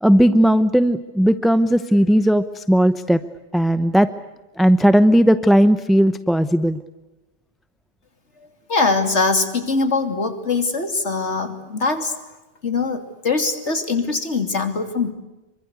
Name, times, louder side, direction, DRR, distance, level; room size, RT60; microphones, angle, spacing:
voice 1, 0.0-3.2 3.5-4.1 4.6-6.8, equal, ahead, 12 dB, 0.7 m, -16 dB
voice 2, 8.7-12.3 12.6-15.1, left 4 dB, 85° left, 7 dB, 3.3 m, -22 dB
27.0 x 24.0 x 8.2 m, 1.1 s
omnidirectional pair, 1.2 m